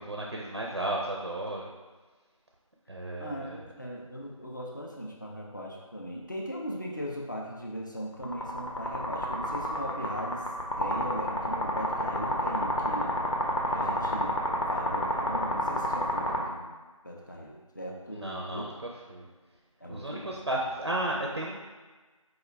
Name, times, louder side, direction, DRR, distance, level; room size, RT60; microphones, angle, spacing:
voice 1, 0.0-1.7 2.9-3.6 18.1-19.3 19.9-21.6, right 1 dB, 50° right, -1 dB, 0.4 m, -33 dB
voice 2, 3.2-10.5 10.8-13.2 13.7-14.4 14.7-16.7 17.0-18.7 19.8-20.4, equal, 35° left, -2 dB, 0.4 m, -38 dB
sound 1, 8.2-16.4, equal, 60° left, 0.8 m, -29 dB
4.5 x 2.2 x 3.2 m, 1.3 s
figure-of-eight pair, 170°, 18 cm